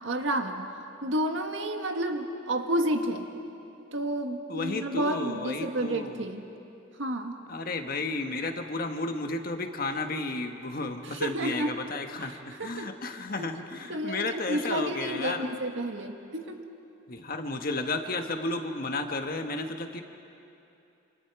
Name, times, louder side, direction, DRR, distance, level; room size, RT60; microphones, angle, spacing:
voice 1, 0.0-0.7 1.0-3.3 3.9-6.5 7.0-7.4 11.0-11.8 12.2-13.0 13.4-13.6 13.9-16.6, right 1 dB, 75° right, 5 dB, 1.7 m, -31 dB
voice 2, 4.5-6.2 7.5-15.5 17.1-20.0, left 2 dB, 50° left, 5 dB, 1.4 m, -33 dB
28.0 x 28.0 x 4.8 m, 2.8 s
head